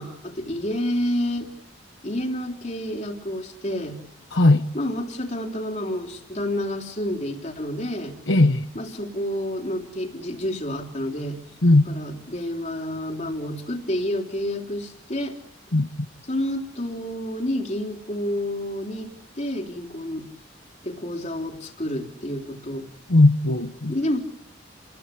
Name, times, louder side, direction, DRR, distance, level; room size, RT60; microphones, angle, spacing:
voice 1, 0.0-1.5 2.0-4.0 4.7-8.1 8.7-11.4 11.9-15.4 16.3-20.3 20.8-22.9 23.9-24.2, left 1 dB, 40° left, 3.7 m, -29 dB
voice 2, 4.3-4.7 8.3-8.6 11.6-11.9 15.7-15.9 23.1-23.9, left 2 dB, 75° left, 1.2 m, -17 dB
30.0 x 21.0 x 8.5 m
head